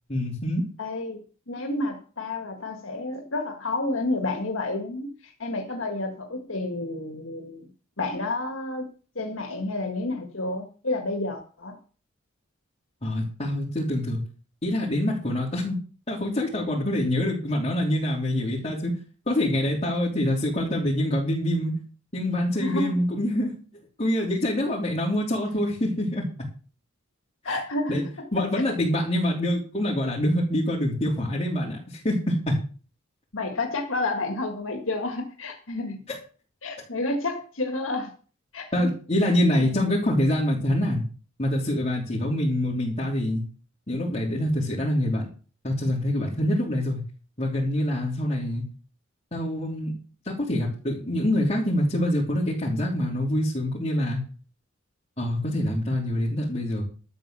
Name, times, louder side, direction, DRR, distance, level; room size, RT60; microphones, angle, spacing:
voice 1, 0.1-0.7 13.0-14.2 14.6-15.8 16.1-18.9 19.3-21.7 22.1-23.5 24.0-26.3 27.4-27.6 27.9-28.0 28.3-32.6 36.1-36.2 38.7-41.0 41.4-43.4 43.9-45.3 45.6-47.0 47.4-48.6 49.3-49.9 50.2-54.2 55.2-56.8, left 1 dB, 30° left, -5 dB, 3.6 m, -25 dB
voice 2, 0.8-1.2 1.5-7.7 8.0-8.9 9.2-11.8 22.6-23.0 27.4-28.5 33.3-36.0 36.6-38.1 38.5-38.7 39.6-39.7, left 2 dB, 80° left, 4 dB, 1.8 m, -30 dB
12.5 x 7.9 x 6.8 m, 0.38 s
head